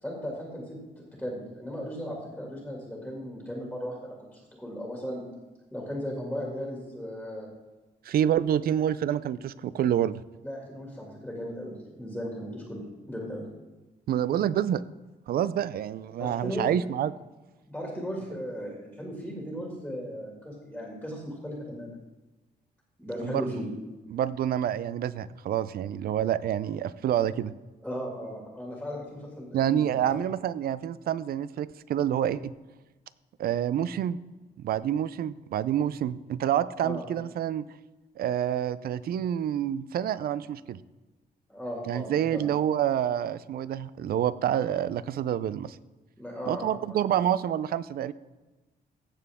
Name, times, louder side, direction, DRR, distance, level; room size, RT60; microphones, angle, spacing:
voice 1, 0.0-5.2 5.7-7.5 10.4-13.5 16.2-16.7 17.7-22.0 23.0-23.7 27.8-30.2 36.8-37.0 41.5-42.5 46.2-47.1, equal, ahead, -2 dB, 2.2 m, -37 dB
voice 2, 8.0-10.2 14.1-14.8 15.3-17.1 23.2-23.5 24.1-27.5 29.5-32.5 33.4-34.2 34.6-37.6 38.2-40.8 41.9-45.8 46.5-48.1, right 10 dB, 65° right, 17 dB, 0.4 m, -27 dB
16.0 x 6.9 x 3.6 m, 1.2 s
cardioid pair, 130°, 17 cm